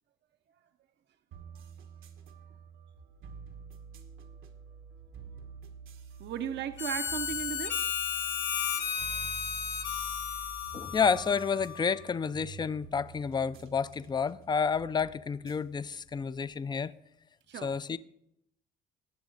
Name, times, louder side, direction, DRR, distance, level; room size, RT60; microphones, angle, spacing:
sound 1, 1.3-16.6, right 5 dB, 85° right, 1.2 m, -49 dB
voice 1, 6.2-7.9 17.5-17.7, right 9 dB, 60° right, 0.7 m, -36 dB
Harmonica, 6.8-12.0, left 7 dB, 70° left, 1.2 m, -34 dB
voice 2, 10.7-16.9 17.6-18.0, left 6 dB, 20° left, 0.4 m, -30 dB
18.0 x 7.2 x 3.9 m
cardioid pair, 90°, 20 cm